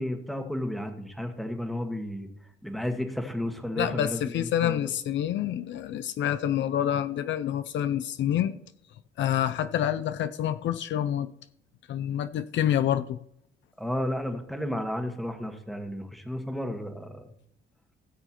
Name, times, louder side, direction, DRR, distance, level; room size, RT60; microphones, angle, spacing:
voice 1, 0.0-2.3 2.6-4.9 13.8-17.3, left 1 dB, ahead, 1.5 m, -32 dB
voice 2, 3.8-8.5 9.2-11.3 11.9-13.2, left 10 dB, 70° left, 0.5 m, -27 dB
17.0 x 6.8 x 3.0 m
cardioid pair, 90°, 20 cm